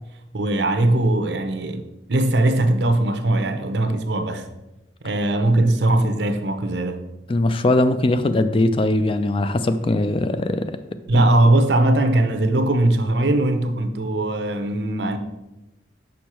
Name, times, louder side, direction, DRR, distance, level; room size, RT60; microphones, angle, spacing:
voice 1, 0.3-1.8 2.1-4.5 5.0-7.1 11.1-15.2, right 1 dB, 75° right, 0.7 m, -20 dB
voice 2, 7.3-10.8 11.1-11.2, left 2 dB, 30° left, 0.3 m, -20 dB
6.4 x 5.4 x 4.3 m
head